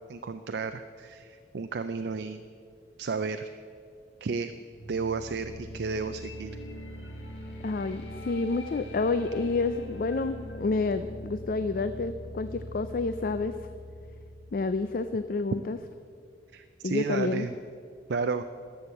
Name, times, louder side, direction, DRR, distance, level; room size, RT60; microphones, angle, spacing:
voice 1, 0.1-2.4 3.0-3.6 4.2-4.5 4.9-6.5 16.5-17.5 18.1-18.4, right 4 dB, 65° right, 9 dB, 0.4 m, -32 dB
sound 1, 4.7-15.6, equal, 85° left, 1.8 m, -42 dB
voice 2, 7.6-13.6 14.5-15.8 16.8-17.5, left 3 dB, 50° left, 11 dB, 0.4 m, -29 dB
13.0 x 7.0 x 7.7 m, 2.2 s
head